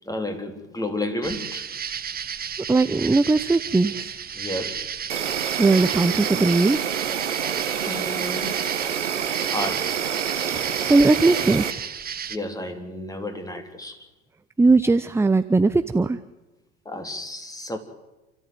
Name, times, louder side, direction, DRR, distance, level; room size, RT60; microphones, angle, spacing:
voice 1, 0.1-1.7 4.3-4.9 7.9-8.6 9.4-9.9 12.3-14.0 16.9-17.8, left 1 dB, 10° left, 3.5 m, -31 dB
sound 1, 1.2-12.4, right 7 dB, 25° right, 1.4 m, -33 dB
voice 2, 2.6-4.2 5.6-6.8 10.5-11.9 14.6-16.2, right 3 dB, 5° right, 0.7 m, -19 dB
Insect, 5.1-11.7, right 8 dB, 85° right, 1.4 m, -27 dB
28.5 x 14.0 x 9.3 m
hypercardioid pair, 80°, 34 cm